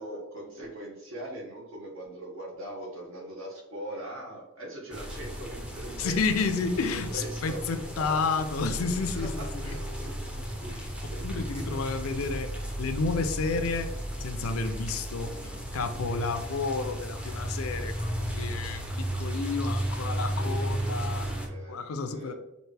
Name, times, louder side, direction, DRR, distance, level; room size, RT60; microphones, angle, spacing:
voice 1, 0.0-6.2 6.5-8.1 9.1-11.8 20.3-22.3, right 1 dB, 65° right, -2 dB, 1.3 m, -41 dB
sound 1, 4.9-21.5, right 1 dB, 5° right, 0.5 m, -34 dB
voice 2, 6.0-9.8 11.2-13.9 14.2-21.3 21.7-22.3, left 4 dB, 80° left, 8 dB, 0.5 m, -31 dB
4.4 x 2.6 x 3.3 m, 0.92 s
head